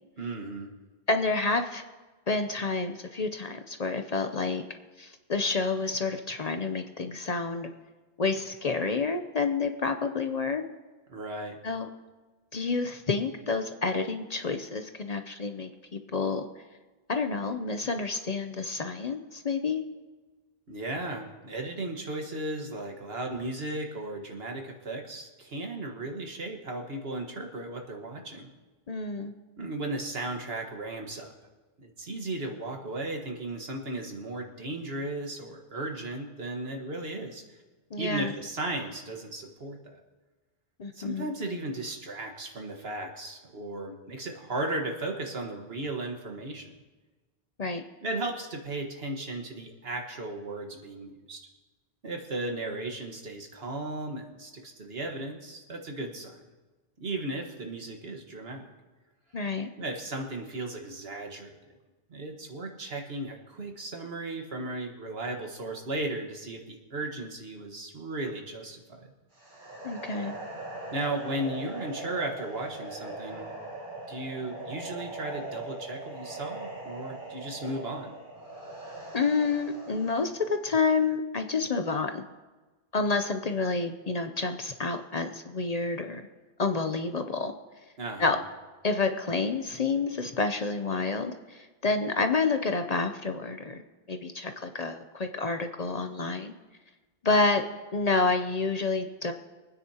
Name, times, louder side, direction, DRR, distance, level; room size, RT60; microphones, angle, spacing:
voice 1, 0.2-0.7 11.1-11.6 20.7-28.5 29.6-31.3 31.8-37.6 38.0-40.0 40.9-46.7 48.0-51.5 52.0-56.4 57.0-58.7 59.8-61.7 62.1-69.1 70.9-73.5 74.1-78.1 88.0-88.4, right 2 dB, 75° right, 2 dB, 1.7 m, -36 dB
voice 2, 1.1-1.8 2.3-4.6 5.0-7.7 8.2-10.7 11.6-11.9 12.5-16.5 17.1-19.8 28.9-29.3 37.9-38.3 40.8-41.3 47.6-47.8 59.3-59.7 69.8-70.3 79.1-82.2 82.9-86.2 86.6-87.5 88.2-88.4 88.8-93.8 94.1-96.5 97.2-97.6 97.9-99.3, left 4 dB, 45° left, 7 dB, 0.7 m, -29 dB
sound 1, 69.3-80.5, right 1 dB, 50° right, 2.3 m, -41 dB
24.5 x 9.4 x 2.9 m, 1.2 s
omnidirectional pair, 1.0 m